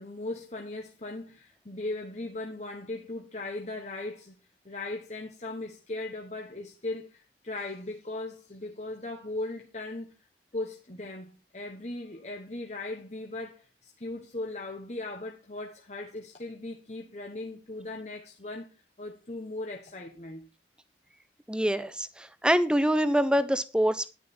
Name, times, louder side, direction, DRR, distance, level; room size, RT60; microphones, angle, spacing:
voice 1, 0.0-4.4 4.6-10.1 10.5-18.7 19.0-20.5, left 2 dB, 40° left, 1.3 m, -38 dB
voice 2, 21.5-24.1, equal, 5° right, 0.7 m, -25 dB
11.0 x 10.5 x 4.4 m
head